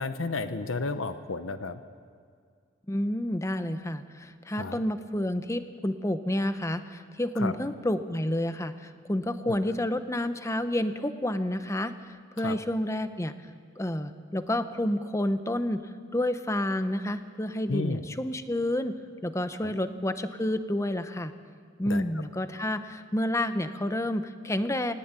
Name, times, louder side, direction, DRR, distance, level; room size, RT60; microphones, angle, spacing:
voice 1, 0.0-1.8 4.6-4.8 7.4-7.5 9.4-9.6 12.4-12.6 17.7-18.0 19.6-19.7 21.9-22.0, left 3 dB, 85° left, 10 dB, 0.9 m, -32 dB
voice 2, 2.9-11.9 12.4-13.3 13.8-15.8 16.1-19.0 19.2-21.3 21.8-24.9, left 1 dB, 15° left, 10 dB, 0.9 m, -29 dB
19.5 x 19.0 x 9.0 m, 2.1 s
head